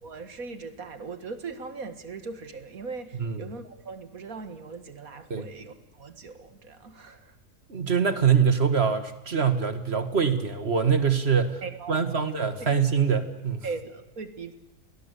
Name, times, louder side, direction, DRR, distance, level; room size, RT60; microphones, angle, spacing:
voice 1, 0.0-7.4 11.6-12.3 12.6-12.8 13.6-14.5, right 4 dB, 60° right, 10 dB, 2.2 m, -39 dB
voice 2, 7.7-11.6 11.9-13.6, right 6 dB, 40° right, 10 dB, 1.9 m, -24 dB
29.5 x 20.5 x 8.4 m, 0.90 s
omnidirectional pair, 1.7 m